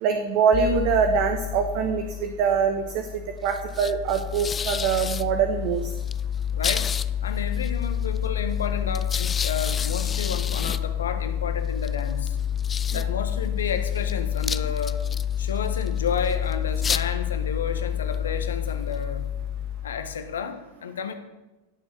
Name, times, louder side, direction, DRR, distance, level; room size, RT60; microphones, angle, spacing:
voice 1, 0.0-5.9 12.9-13.0, right 6 dB, 45° right, 7 dB, 1.2 m, -24 dB
sound 1, 0.5-20.4, left 9 dB, 20° left, 0.5 m, -28 dB
voice 2, 6.5-6.9 7.2-12.4 12.9-15.0 15.4-19.3 19.8-21.1, left 6 dB, 65° left, 8 dB, 1.5 m, -31 dB
16.5 x 7.1 x 7.1 m, 1.1 s
figure-of-eight pair, 90°, 0 cm